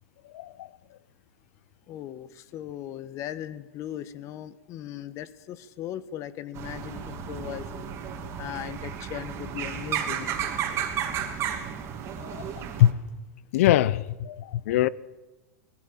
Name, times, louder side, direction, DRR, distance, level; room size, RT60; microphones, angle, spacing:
voice 1, 0.3-0.7 12.2-12.4 12.8-12.9 13.5-14.9, left 13 dB, 65° left, 0.8 m, -22 dB
voice 2, 1.9-7.9 8.4-10.4, left 11 dB, 40° left, 1.3 m, -38 dB
sound 1, 6.5-12.9, right 8 dB, 35° right, 2.9 m, -33 dB
21.0 x 14.5 x 8.9 m
hypercardioid pair, 125°, 8 cm